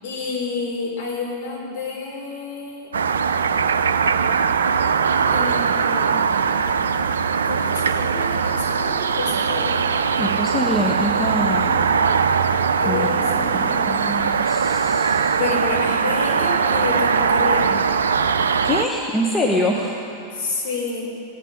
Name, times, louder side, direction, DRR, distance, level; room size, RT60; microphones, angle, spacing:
voice 1, 0.0-2.9 5.3-6.2 7.4-9.8 12.7-14.0 15.4-17.8 20.3-21.1, left 4 dB, 50° left, -3 dB, 4.2 m, -29 dB
sound 1, 2.9-18.8, right 6 dB, 70° right, 0.4 m, -20 dB
voice 2, 10.2-11.8 12.8-15.4 18.6-19.9, left 1 dB, 15° left, -1 dB, 1.1 m, -25 dB
17.0 x 11.0 x 5.3 m, 2.7 s
figure-of-eight pair, 90°, 0 cm